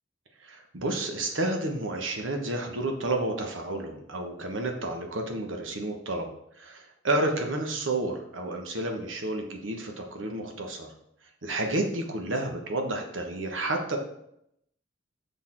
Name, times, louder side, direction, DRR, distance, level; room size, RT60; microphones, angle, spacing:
voice 1, 0.4-6.3 6.6-10.9 11.4-14.0, right 2 dB, 85° right, 3 dB, 1.3 m, -30 dB
6.6 x 5.7 x 4.5 m, 0.76 s
head